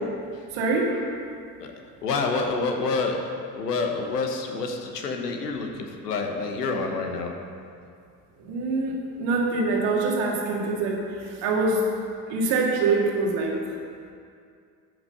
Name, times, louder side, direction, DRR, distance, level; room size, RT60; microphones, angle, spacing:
voice 1, 0.5-1.0 8.4-11.9 12.3-13.6, right 3 dB, 60° right, -1 dB, 2.1 m, -25 dB
voice 2, 2.0-3.2 3.5-7.3, left 4 dB, 80° left, 3 dB, 1.2 m, -27 dB
10.5 x 6.2 x 6.6 m, 2.3 s
figure-of-eight pair, 60°, 47 cm